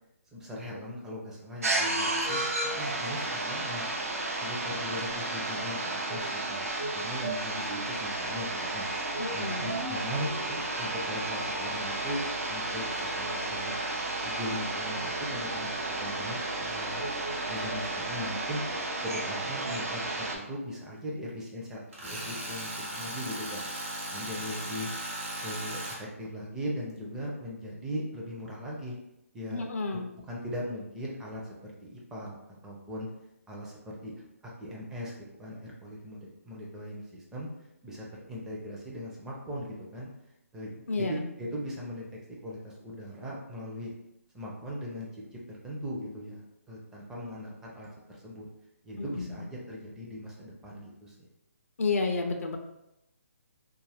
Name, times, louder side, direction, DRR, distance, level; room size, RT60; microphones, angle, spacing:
voice 1, 0.3-2.4 2.8-3.9 4.4-6.7 6.9-8.9 9.3-12.2 12.5-13.7 14.2-15.7 16.0-17.0 17.5-18.6 19.0-23.6 24.1-24.9 25.4-29.0 29.3-29.6 30.3-32.3 32.6-33.1 33.5-34.1 34.4-35.1 35.4-37.5 37.8-40.1 40.5-42.0 42.4-43.9 44.3-45.1 45.3-48.5 48.8-51.3, equal, 5° right, -4 dB, 0.4 m, -39 dB
sound 1, 1.6-20.4, right 2 dB, 70° right, 0.6 m, -32 dB
voice 2, 9.2-9.8 29.5-30.1 40.9-41.2 49.0-49.4 51.8-52.6, left 3 dB, 70° left, 4 dB, 0.4 m, -31 dB
Tools, 21.9-26.0, right 1 dB, 55° right, 1.0 m, -37 dB
2.3 x 2.1 x 3.4 m, 0.87 s
figure-of-eight pair, 145°, 8 cm